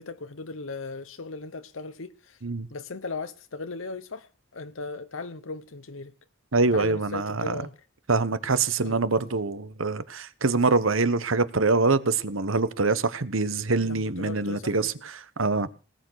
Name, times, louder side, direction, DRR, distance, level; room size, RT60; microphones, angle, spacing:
voice 1, 0.0-2.4 2.7-6.1 6.7-7.7 8.8-9.0 13.8-14.9, left 3 dB, 85° left, 1.0 m, -37 dB
voice 2, 6.5-7.6 8.1-15.7, right 3 dB, 85° right, 1.2 m, -25 dB
19.0 x 9.4 x 6.5 m
head